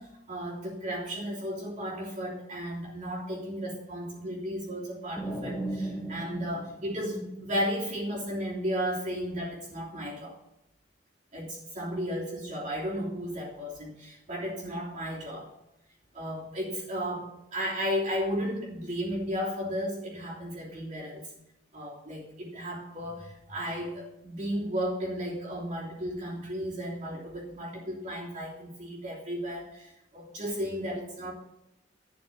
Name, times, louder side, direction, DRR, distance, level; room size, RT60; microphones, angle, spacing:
voice 1, 0.0-10.4 11.3-15.5 16.1-21.3 21.7-31.3, equal, 40° right, -9 dB, 3.4 m, -34 dB
sound 1, 5.2-7.9, right 2 dB, ahead, 1.4 m, -36 dB
12.5 x 6.4 x 7.2 m, 0.89 s
head